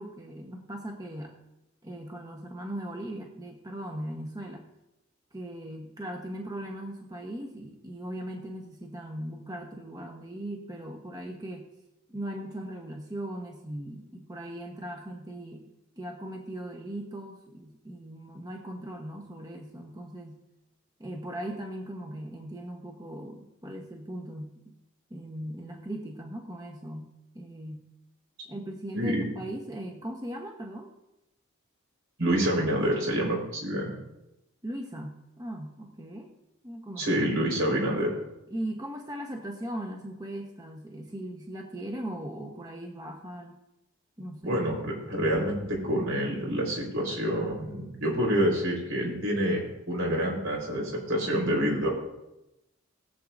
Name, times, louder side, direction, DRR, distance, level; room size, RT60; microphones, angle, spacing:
voice 1, 0.0-1.4 1.8-4.6 5.3-11.7 12.1-20.4 21.0-24.7 25.1-27.9 28.4-30.9 34.6-36.3 36.6-37.2 38.5-43.6 44.2-44.6, right 1 dB, 20° right, 1 dB, 1.1 m, -39 dB
voice 2, 29.0-29.3 32.2-33.9 37.0-38.1 44.4-49.6 49.9-51.9, equal, 75° right, -1 dB, 4.2 m, -27 dB
21.0 x 7.8 x 2.6 m, 0.91 s
head